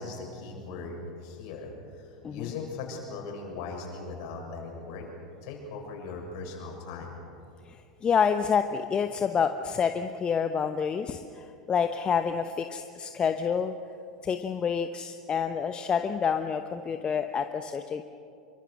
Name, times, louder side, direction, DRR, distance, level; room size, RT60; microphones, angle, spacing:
voice 1, 0.0-5.1 5.4-7.2, left 4 dB, 55° left, 0 dB, 7.2 m, -39 dB
voice 2, 7.6-13.7 14.2-18.0, left 6 dB, 25° left, 8 dB, 1.0 m, -28 dB
27.0 x 24.0 x 6.5 m, 2.6 s
figure-of-eight pair, 85°, 4 cm